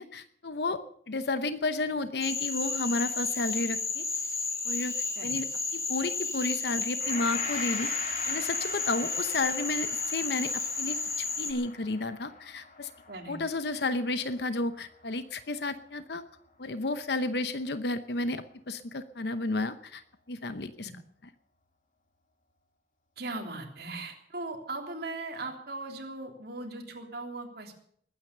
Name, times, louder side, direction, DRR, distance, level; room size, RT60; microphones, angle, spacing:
voice 1, 0.0-4.0 4.6-4.9 5.2-5.5 5.7-7.9 8.3-12.9 13.3-16.2 16.6-20.0 20.3-20.9, left 2 dB, 65° left, 11 dB, 0.9 m, -32 dB
Cricket / Frog, 2.2-11.5, left 4 dB, 20° left, 1.8 m, -32 dB
Gong, 7.0-15.4 15.8-15.9, left 4 dB, 45° left, 2.3 m, -43 dB
voice 2, 13.1-13.4 20.8-20.9 23.2-27.8, right 2 dB, 60° right, 2 dB, 3.3 m, -39 dB
21.0 x 9.5 x 6.7 m, 0.65 s
head